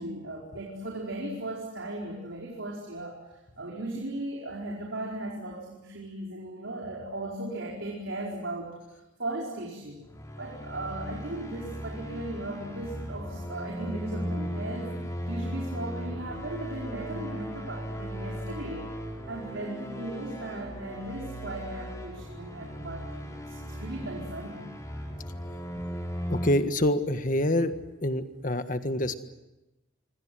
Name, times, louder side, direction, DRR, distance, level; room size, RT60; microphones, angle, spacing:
voice 1, 0.0-3.2 3.6-10.0 10.4-14.9 15.3-18.9 19.3-24.6, right 1 dB, 85° right, -2 dB, 4.8 m, -37 dB
sound 1, 10.0-26.5, equal, 15° left, 4.4 m, -37 dB
voice 2, 26.3-27.7 28.0-29.1, left 1 dB, 45° left, 9 dB, 1.6 m, -26 dB
26.5 x 25.5 x 7.8 m, 1.0 s
head